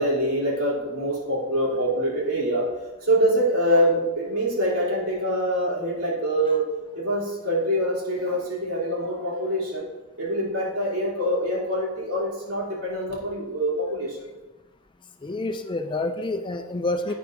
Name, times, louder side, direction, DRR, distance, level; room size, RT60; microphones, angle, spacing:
voice 1, 0.0-9.9 10.2-14.3, equal, 75° right, -5 dB, 2.9 m, -25 dB
voice 2, 15.2-17.1, left 2 dB, 20° left, 6 dB, 0.4 m, -28 dB
10.5 x 9.2 x 2.6 m, 1.1 s
head